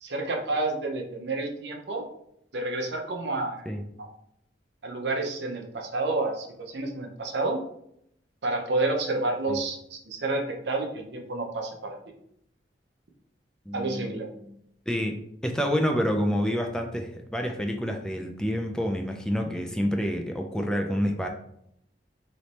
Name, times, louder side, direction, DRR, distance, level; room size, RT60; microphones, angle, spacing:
voice 1, 0.0-2.1 2.5-3.7 4.0-4.1 4.8-7.6 8.4-12.0 13.7-14.3, right 2 dB, 75° right, 2 dB, 0.8 m, -29 dB
voice 2, 13.7-14.1 14.5-14.6 14.9-15.1 15.4-21.3, equal, 5° left, 3 dB, 0.4 m, -28 dB
3.3 x 3.0 x 4.1 m, 0.72 s
head